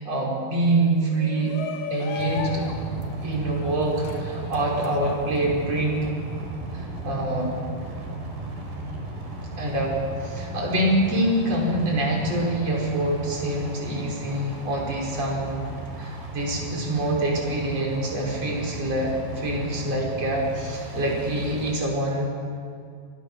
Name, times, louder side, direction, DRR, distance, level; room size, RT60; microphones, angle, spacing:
voice 1, 0.0-1.6 1.9-2.6 3.2-6.1 6.7-7.6 9.6-10.0 10.2-15.7 16.0-22.3, right 1 dB, 40° right, -2 dB, 6.6 m, -25 dB
Shout, 1.0-6.1, left 7 dB, 90° left, 3.6 m, -36 dB
sound 1, 2.2-21.7, right 2 dB, 85° right, 7.0 m, -35 dB
28.5 x 25.5 x 7.1 m, 2.2 s
omnidirectional pair, 4.3 m